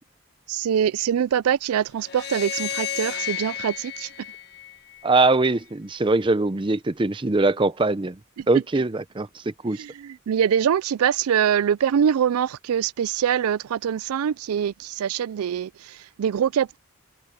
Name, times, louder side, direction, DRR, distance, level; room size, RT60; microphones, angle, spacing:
voice 1, 0.5-4.1 8.4-8.5 9.8-16.8, right 8 dB, 85° right, 0.4 m, -24 dB
sound 1, 2.0-5.3, left 10 dB, 50° left, 1.6 m, -32 dB
voice 2, 5.0-8.2 8.5-9.8, right 2 dB, 20° right, 0.5 m, -22 dB
head